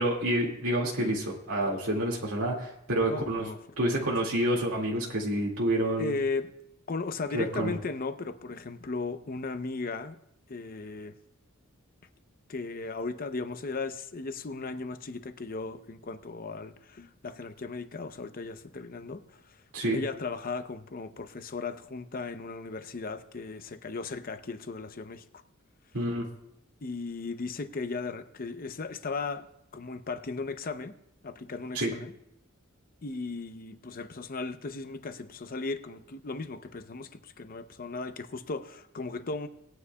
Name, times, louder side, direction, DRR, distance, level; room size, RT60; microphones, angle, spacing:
voice 1, 0.0-3.5 3.8-6.2 7.3-7.7 19.7-20.0 25.9-26.3 31.7-32.0, right 1 dB, 80° right, 2.1 m, -28 dB
voice 2, 3.1-4.1 6.0-6.5 6.9-10.2 10.5-11.1 12.5-19.6 19.9-25.2 26.8-30.9 31.2-32.1 33.0-39.5, left 3 dB, 40° left, 0.7 m, -36 dB
20.0 x 9.7 x 2.3 m
head